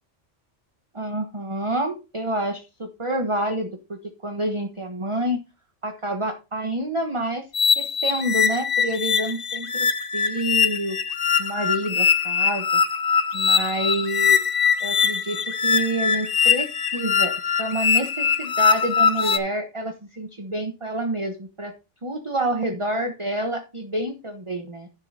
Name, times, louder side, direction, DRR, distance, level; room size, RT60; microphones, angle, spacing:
voice 1, 0.9-5.4 5.8-7.4 7.8-11.0 11.4-12.7 13.3-14.4 14.8-21.7 22.0-24.9, right 1 dB, 25° right, 5 dB, 1.2 m, -28 dB
sound 1, 7.5-19.4, left 6 dB, 50° left, 1.1 m, -22 dB
11.0 x 6.4 x 4.2 m, 0.28 s
omnidirectional pair, 1.3 m